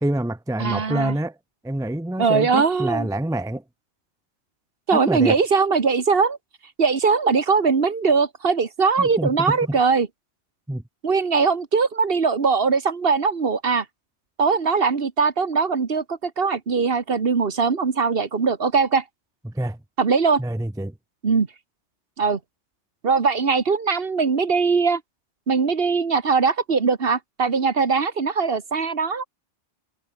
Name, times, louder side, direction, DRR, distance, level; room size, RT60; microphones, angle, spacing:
voice 1, 0.0-1.3 1.6-3.6 4.9-5.4 9.0-9.8 10.7-10.8 19.4-19.8 20.4-20.9, right 1 dB, 5° right, 0.5 m, -26 dB
voice 2, 0.6-1.2 2.2-3.1 4.9-6.4 6.8-10.1 11.0-13.8 14.4-19.0 20.0-20.4 21.2-21.5 22.2-22.4 23.0-25.0 25.5-29.2, right 5 dB, 50° right, 1.6 m, -21 dB
omnidirectional pair, 1.2 m